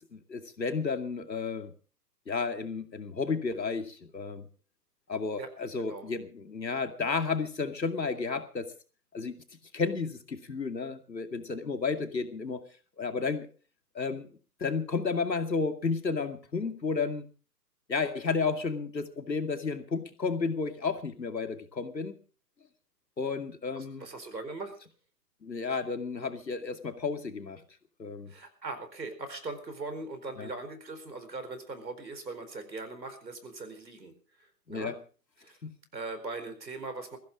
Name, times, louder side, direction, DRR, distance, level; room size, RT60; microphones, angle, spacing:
voice 1, 0.1-1.7 2.3-4.5 5.1-8.7 9.1-9.4 9.7-12.7 13.0-13.5 13.9-14.3 14.6-17.3 17.9-22.2 23.2-24.1 25.4-27.6 28.0-28.3 30.4-30.5 34.7-34.9 35.6-35.7, left 4 dB, 90° left, 7 dB, 2.4 m, -32 dB
voice 2, 5.8-6.1 23.7-24.8 28.3-35.0 35.4-35.6 35.9-37.2, right 3 dB, 85° right, 8 dB, 4.7 m, -40 dB
21.0 x 15.5 x 3.8 m, 0.36 s
figure-of-eight pair, 130°, 49 cm